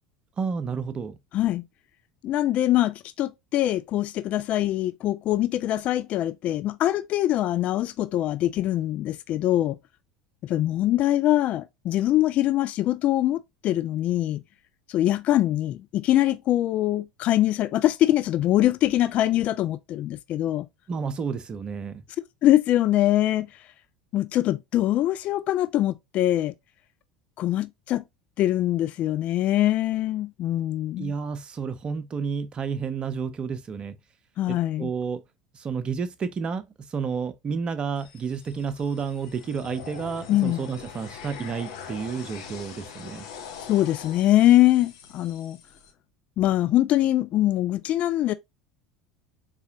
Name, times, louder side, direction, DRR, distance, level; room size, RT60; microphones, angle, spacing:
voice 1, 0.4-1.2 20.9-22.0 31.0-34.0 34.5-35.2 35.5-43.3, right 6 dB, 30° right, 0.6 m, -31 dB
voice 2, 2.2-9.8 10.4-14.4 14.9-20.6 22.4-23.5 24.1-26.5 27.4-28.0 28.4-31.1 34.4-34.9 40.3-40.6 43.7-45.6 46.4-48.3, left 14 dB, 45° left, 0.3 m, -23 dB
sound 1, 38.0-45.9, left 7 dB, 65° left, 0.7 m, -43 dB
4.1 x 2.8 x 2.6 m
figure-of-eight pair, 75°, 3 cm